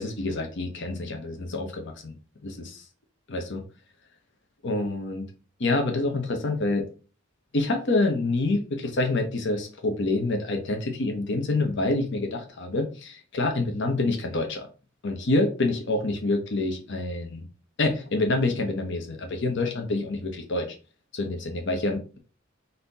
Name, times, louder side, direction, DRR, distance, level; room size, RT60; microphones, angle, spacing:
voice 1, 0.0-2.1 2.4-2.8 3.3-3.6 4.6-5.3 5.6-6.8 7.5-14.6 15.0-17.4 17.8-20.7 21.1-22.2, left 2 dB, 60° left, 4 dB, 0.8 m, -27 dB
4.1 x 2.7 x 4.0 m, 0.35 s
head